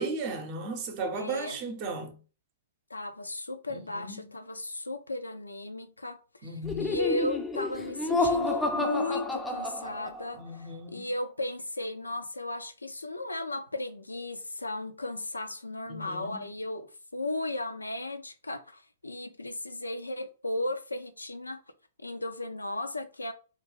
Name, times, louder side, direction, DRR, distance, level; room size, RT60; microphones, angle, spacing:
voice 1, 0.0-2.2 3.7-4.4 6.4-7.0 10.3-11.1 15.9-16.4, right 3 dB, 35° right, 0.6 m, -36 dB
voice 2, 1.1-1.6 2.9-6.2 6.8-10.4 10.9-16.9 17.1-21.6 22.0-23.3, left 2 dB, 85° left, 0.3 m, -35 dB
Laughter, 6.6-10.4, left 2 dB, 10° left, 0.4 m, -30 dB
2.3 x 2.2 x 3.1 m
figure-of-eight pair, 110°, 0 cm